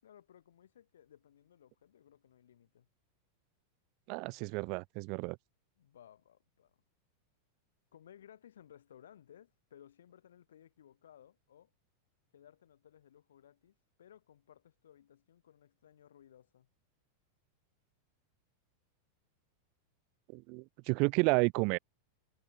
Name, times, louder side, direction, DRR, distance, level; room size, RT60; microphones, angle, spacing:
voice 1, 0.0-2.9 5.8-6.8 7.9-11.7 12.3-16.7, left 10 dB, 65° left, 5.0 m, -60 dB
voice 2, 4.1-5.4 20.3-21.8, right 31 dB, 45° right, 0.8 m, -31 dB
figure-of-eight pair, 90°, 0 cm